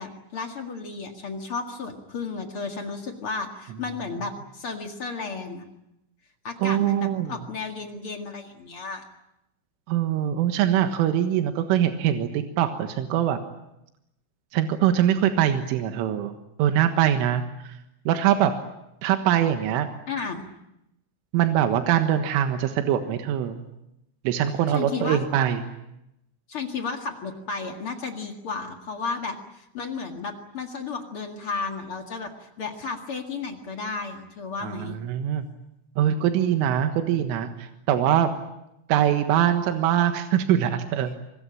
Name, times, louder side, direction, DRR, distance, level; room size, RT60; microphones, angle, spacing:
voice 1, 0.0-5.6 6.4-9.0 20.1-20.4 24.7-25.2 26.5-35.0, left 4 dB, 50° left, 4 dB, 1.6 m, -33 dB
voice 2, 6.6-7.4 9.9-13.4 14.5-17.7 18.1-18.5 19.0-19.9 21.3-23.6 24.3-25.6 34.6-35.5 36.0-38.3 38.9-41.2, right 10 dB, 85° right, 7 dB, 4.0 m, -23 dB
26.5 x 21.5 x 9.0 m, 0.85 s
omnidirectional pair, 5.6 m